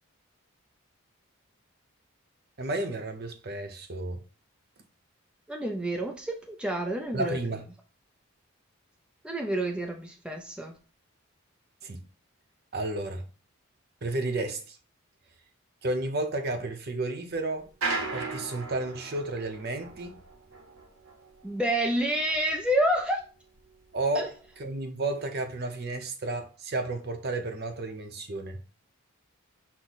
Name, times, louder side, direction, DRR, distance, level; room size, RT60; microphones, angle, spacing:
voice 1, 2.6-4.2 7.1-7.6 11.8-12.0 12.7-13.2 14.0-14.8 15.8-17.7 18.1-20.1 23.9-24.3 24.6-28.6, right 2 dB, 50° right, 0.6 m, -32 dB
voice 2, 5.5-7.4 9.2-10.8 21.4-23.2 24.1-24.3, right 1 dB, 5° right, 0.4 m, -28 dB
sound 1, 17.6-23.2 23.6-24.8, right 3 dB, 75° right, 0.9 m, -37 dB
6.1 x 2.1 x 4.0 m
head